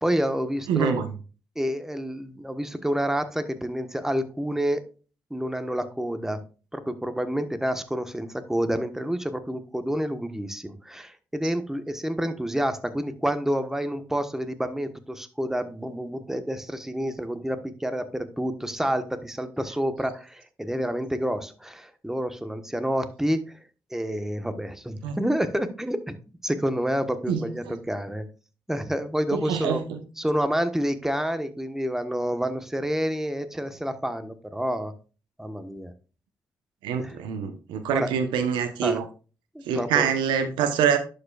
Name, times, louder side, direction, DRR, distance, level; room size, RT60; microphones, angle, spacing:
voice 1, 0.0-1.0 1.5-4.8 5.3-6.4 6.7-23.6 23.9-26.1 26.4-28.3 28.7-29.8 30.2-34.9 35.4-35.9 36.9-37.2 37.9-38.1 38.8-39.0 39.5-40.1, equal, 5° right, 1.2 m, -28 dB
voice 2, 0.7-1.1 25.0-25.2 27.3-27.7 29.3-30.0 36.8-39.0 39.7-41.0, right 7 dB, 85° right, 1.0 m, -25 dB
11.0 x 5.2 x 2.4 m
supercardioid pair, 55°, 8 cm